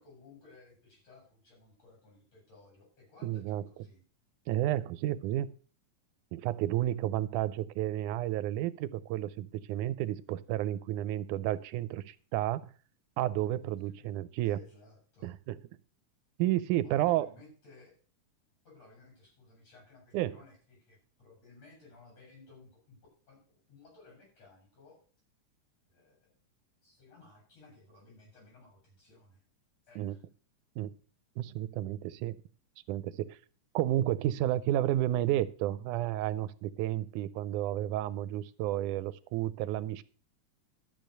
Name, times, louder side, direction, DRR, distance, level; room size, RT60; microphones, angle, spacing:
voice 1, 0.0-4.0 13.8-14.1 14.4-15.3 16.8-17.9 18.6-23.0 23.3-25.0 25.9-26.3 26.8-29.4 29.8-30.2, left 3 dB, 55° left, 0 dB, 8.4 m, -58 dB
voice 2, 3.2-3.6 4.5-5.5 6.3-12.7 13.2-14.6 15.2-15.6 16.4-17.3 20.1-20.4 30.0-30.2 30.8-30.9 31.4-32.4 32.9-33.4 33.7-40.0, right 13 dB, 90° right, 17 dB, 2.1 m, -31 dB
12.5 x 6.9 x 6.5 m, 0.40 s
omnidirectional pair, 3.5 m